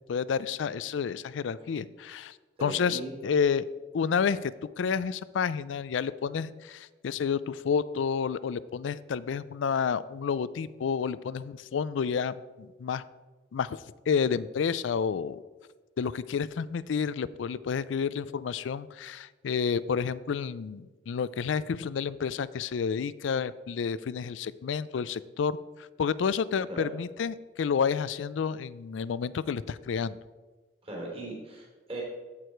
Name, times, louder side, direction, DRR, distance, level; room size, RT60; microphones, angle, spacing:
voice 1, 0.1-2.3 2.6-3.6 3.9-13.0 13.5-13.8 14.1-15.4 16.0-25.6 26.0-30.2, left 6 dB, 80° left, 17 dB, 0.4 m, -30 dB
voice 2, 2.6-3.1 26.7-26.9 30.8-32.0, right 2 dB, 30° right, -2 dB, 3.1 m, -38 dB
14.5 x 4.9 x 4.5 m, 1.3 s
head